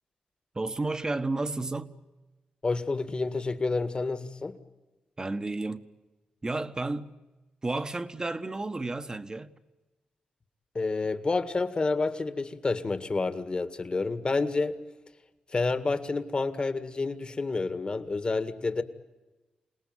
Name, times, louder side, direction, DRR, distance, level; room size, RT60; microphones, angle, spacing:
voice 1, 0.5-2.0 5.2-5.9 6.4-7.1 7.6-9.5, right 2 dB, 25° right, 1.5 m, -32 dB
voice 2, 2.6-4.6 10.7-14.8 15.5-18.8, left 3 dB, 35° left, 2.0 m, -29 dB
28.0 x 19.0 x 9.4 m
cardioid pair, 75°, 3 cm